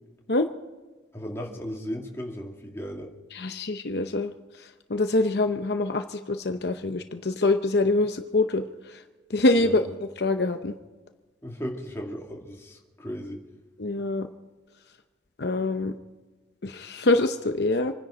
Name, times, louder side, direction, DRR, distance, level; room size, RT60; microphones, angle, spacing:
voice 1, 1.1-3.1 9.6-9.8 11.4-13.4, equal, 15° left, -1 dB, 2.4 m, -36 dB
voice 2, 3.3-4.3 4.9-8.6 9.3-9.8 10.2-10.7 13.8-14.3 15.4-15.9 16.6-17.9, left 2 dB, 60° left, 7 dB, 0.7 m, -24 dB
27.0 x 10.5 x 5.0 m, 1.3 s
head